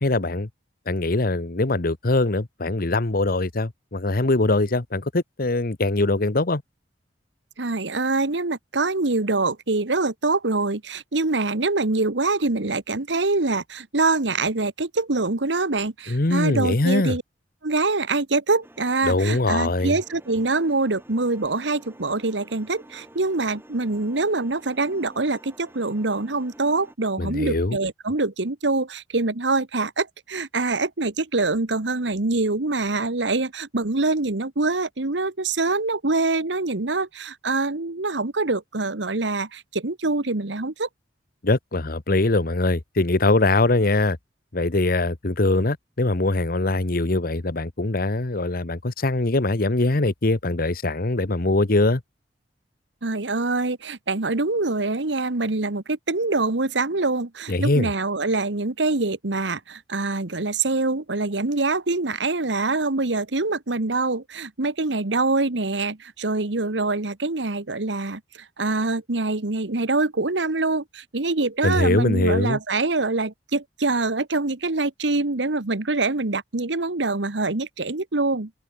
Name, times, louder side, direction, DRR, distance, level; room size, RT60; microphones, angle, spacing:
voice 1, 0.0-0.5 0.9-6.6 16.1-17.2 19.0-20.0 27.2-27.8 41.4-44.2 44.5-52.0 57.5-57.9 71.6-72.6, left 2 dB, 55° left, 1.2 m, -22 dB
voice 2, 7.6-17.2 17.6-40.9 53.0-78.5, right 3 dB, 90° right, 1.5 m, -24 dB
sound 1, 18.6-26.9, right 1 dB, 15° right, 3.2 m, -49 dB
open air
head